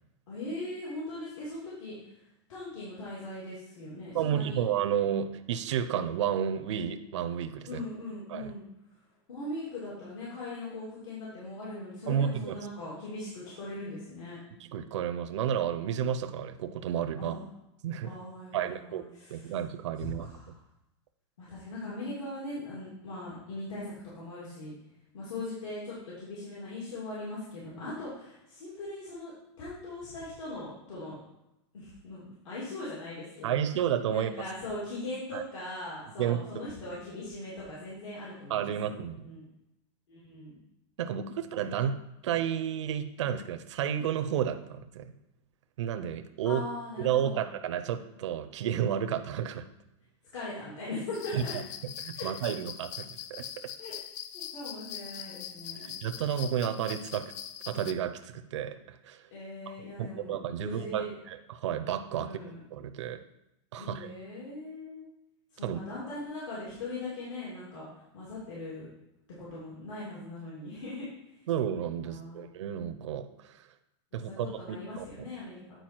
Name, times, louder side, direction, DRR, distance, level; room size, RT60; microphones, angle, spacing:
voice 1, 0.3-4.6 7.6-8.6 9.3-14.4 17.2-17.4 18.0-19.6 20.0-20.5 21.4-24.7 25.1-29.3 29.6-31.2 31.7-33.6 34.1-39.4 40.1-40.5 46.4-47.5 50.3-51.5 52.1-52.3 53.8-53.9 54.3-55.9 59.3-61.1 62.2-62.6 63.8-65.1 65.5-68.9 69.4-71.5 72.0-72.4 74.3-75.8, left 2 dB, 90° left, -7 dB, 2.8 m, -40 dB
voice 2, 4.1-7.8 8.3-8.5 12.1-12.6 14.6-17.4 17.8-18.2 18.5-20.5 33.4-34.3 35.3-35.4 36.2-36.4 38.5-39.3 41.0-42.0 42.2-45.1 45.8-46.6 47.0-49.7 51.3-51.4 52.0-53.5 55.8-57.3 57.7-59.3 60.0-62.3 62.7-63.2 63.7-64.1 65.6-65.8 71.5-73.7 74.1-75.3, right 9 dB, 75° right, 8 dB, 0.6 m, -31 dB
sound 1, 51.1-57.9, left 9 dB, 35° left, 0.4 m, -42 dB
9.2 x 4.5 x 4.5 m, 0.87 s
supercardioid pair, 170°, 15 cm